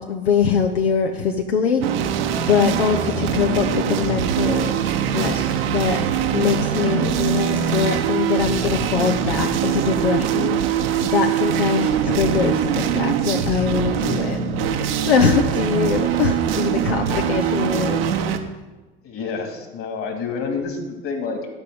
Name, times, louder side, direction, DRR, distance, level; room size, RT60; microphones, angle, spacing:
voice 1, 0.0-2.2 2.5-18.0, left 6 dB, 80° left, 5 dB, 0.8 m, -23 dB
sound 1, 1.8-18.4, right 9 dB, 65° right, 1.1 m, -22 dB
voice 2, 17.0-17.4 19.0-21.5, left 4 dB, 45° left, 4 dB, 2.6 m, -29 dB
12.0 x 5.4 x 7.7 m, 1.2 s
figure-of-eight pair, 70°, 31 cm